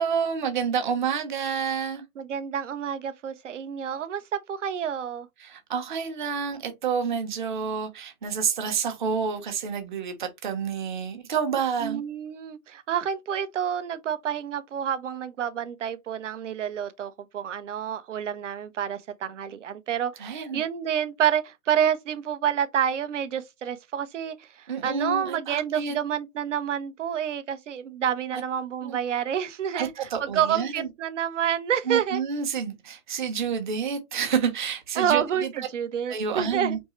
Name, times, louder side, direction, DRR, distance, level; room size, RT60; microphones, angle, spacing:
voice 1, 0.0-2.0 5.4-12.0 20.2-20.6 24.7-25.9 28.3-28.4 28.8-29.0 29.7-30.9 31.9-35.5 36.1-36.8, right 6 dB, 35° right, 1.0 m, -29 dB
voice 2, 2.2-5.3 11.8-24.5 24.8-32.2 35.0-36.8, right 9 dB, 55° right, 0.8 m, -28 dB
4.5 x 3.3 x 3.1 m
hypercardioid pair, 170°, 44 cm